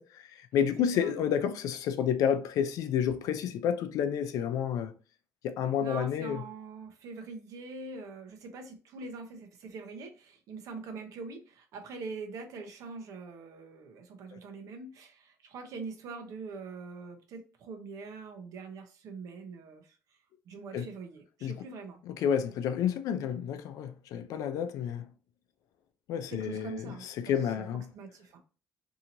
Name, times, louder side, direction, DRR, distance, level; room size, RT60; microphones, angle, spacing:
voice 1, 0.0-4.9 5.4-6.4 14.3-14.4 20.7-20.9 21.4-21.6 22.1-25.1 26.1-27.9, left 8 dB, 75° left, 0.4 m, -30 dB
voice 2, 5.8-20.0 20.5-22.0 26.3-28.4, right 4 dB, 70° right, 0.7 m, -43 dB
2.8 x 2.7 x 2.5 m
cardioid pair, 80°, 6 cm